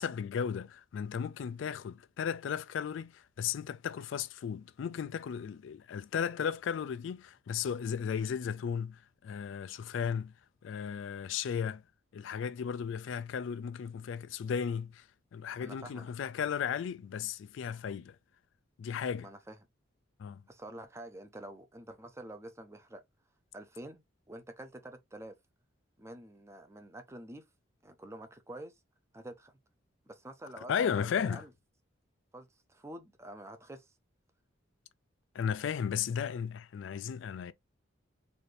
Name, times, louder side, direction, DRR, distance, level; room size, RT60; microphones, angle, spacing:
voice 1, 0.0-10.3 10.6-11.8 12.1-15.0 15.3-18.2 18.8-19.3 20.2-20.4 30.7-31.4 35.3-37.5, left 7 dB, 70° left, 0.3 m, -35 dB
voice 2, 15.6-16.1 19.2-19.6 20.5-23.0 23.5-25.4 26.0-27.4 27.8-28.7 29.1-29.5 30.1-31.5 32.3-33.9, right 1 dB, 15° right, 0.6 m, -47 dB
4.2 x 2.6 x 3.2 m
head